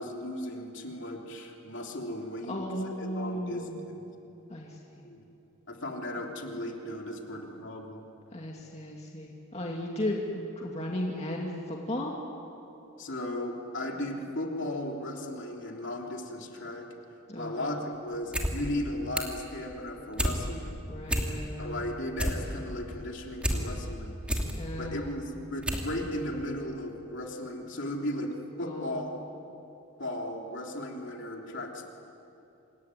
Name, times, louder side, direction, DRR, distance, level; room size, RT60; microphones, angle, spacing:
voice 1, 0.0-4.0 5.0-5.2 5.7-8.1 13.0-16.9 17.4-20.8 21.6-24.2 24.8-29.2 30.0-31.9, left 1 dB, 55° left, 1 dB, 3.3 m, -36 dB
voice 2, 2.5-3.8 4.5-4.7 8.3-11.5 11.9-12.1 17.3-17.6 20.9-21.7 24.6-25.0 28.7-28.9, left 1 dB, 30° left, -1 dB, 2.3 m, -35 dB
sound 1, 18.1-18.5 18.8-19.4 19.8-20.4 20.7-20.8 21.0-21.6 21.9-23.6 24.0-24.5 25.1-25.2 25.6-25.9 26.2-26.3, equal, 5° right, 2.6 m, -29 dB
27.0 x 22.5 x 9.9 m, 2.9 s
head